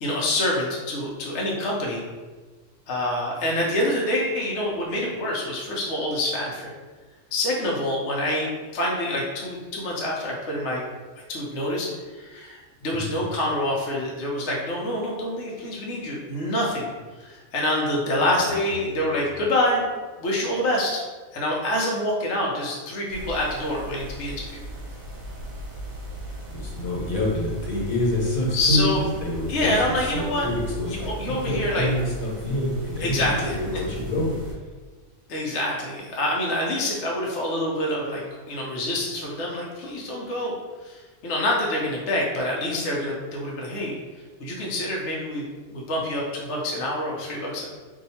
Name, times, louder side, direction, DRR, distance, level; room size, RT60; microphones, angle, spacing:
voice 1, 0.0-2.0 2.9-6.7 7.3-10.8 11.3-16.9 17.2-19.9 20.2-21.0 21.3-24.6 28.5-29.0 29.5-30.5 30.9-31.9 33.0-33.5 35.3-38.2 38.5-40.5 40.8-44.0 44.4-45.4 45.7-47.7, left 1 dB, 60° left, -3 dB, 0.9 m, -26 dB
voice 2, 18.4-19.2 26.5-34.3, left 1 dB, 80° left, -4 dB, 1.4 m, -27 dB
sound 1, 23.1-34.5, equal, 80° right, 1.2 m, -37 dB
2.7 x 2.4 x 4.1 m, 1.3 s
omnidirectional pair, 1.4 m